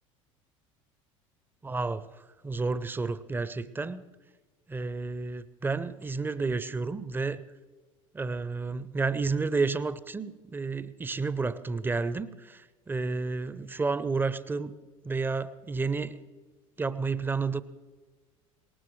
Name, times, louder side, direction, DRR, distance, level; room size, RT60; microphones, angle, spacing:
voice 1, 1.6-4.0 4.7-7.4 8.1-14.8 15.0-16.2 16.8-17.6, right 4 dB, 10° right, 16 dB, 0.7 m, -31 dB
19.0 x 19.0 x 3.2 m, 1.4 s
figure-of-eight pair, 70°, 17 cm